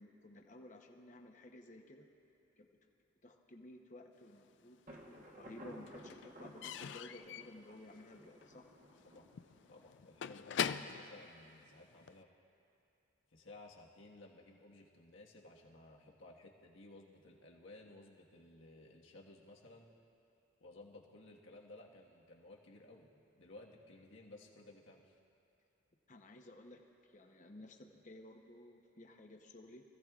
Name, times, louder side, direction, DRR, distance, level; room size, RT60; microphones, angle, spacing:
voice 1, 0.0-2.0 2.6-2.7 3.2-8.6 26.1-26.8 27.1-29.8, left 1 dB, 40° left, 3 dB, 0.9 m, -55 dB
Slam / Squeak / Wood, 4.4-5.2 5.4-12.2, left 8 dB, 60° left, 0.4 m, -43 dB
Thunder, 4.9-10.5, right 1 dB, 40° right, 1.2 m, -56 dB
voice 2, 9.7-12.3 13.3-19.9 20.6-23.1 23.3-25.1, left 2 dB, 80° left, -2 dB, 1.5 m, -57 dB
25.0 x 15.5 x 2.4 m, 2.7 s
head